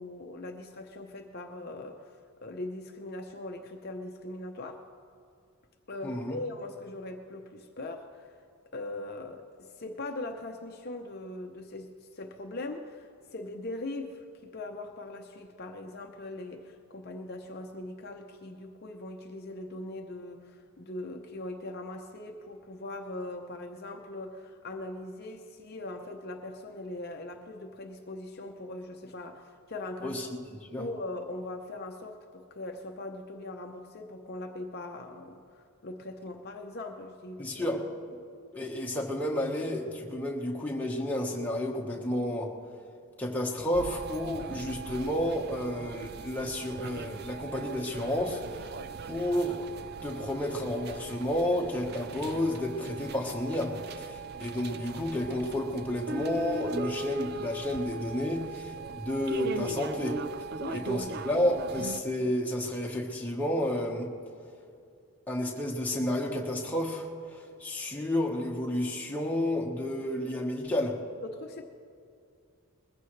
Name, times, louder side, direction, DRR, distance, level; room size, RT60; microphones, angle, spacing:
voice 1, 0.0-2.2 2.4-4.9 5.9-8.3 8.7-30.2 30.8-37.6 60.6-61.2 71.2-71.6, left 2 dB, 45° left, 3 dB, 0.7 m, -40 dB
voice 2, 6.0-6.4 30.0-30.4 30.7-30.8 37.4-37.8 38.5-42.5 43.2-48.7 49.0-49.7 50.0-60.2 60.7-64.1 65.3-70.9, left 1 dB, 5° left, -2 dB, 1.3 m, -31 dB
sound 1, 43.7-62.0, right 4 dB, 45° right, 0.4 m, -39 dB
21.0 x 15.0 x 3.3 m, 2.4 s
head